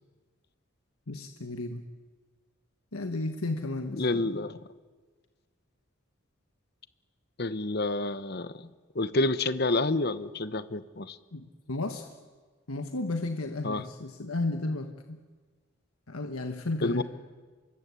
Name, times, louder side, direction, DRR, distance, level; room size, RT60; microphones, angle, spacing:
voice 1, 1.1-1.8 2.9-4.0 11.3-12.1 12.7-15.2 16.1-17.0, left 2 dB, 85° left, 6 dB, 1.4 m, -33 dB
voice 2, 4.0-4.6 7.4-8.7 8.9-11.2 13.6-13.8 16.8-17.0, left 2 dB, 45° left, 13 dB, 1.0 m, -29 dB
25.0 x 22.5 x 8.4 m, 1.4 s
head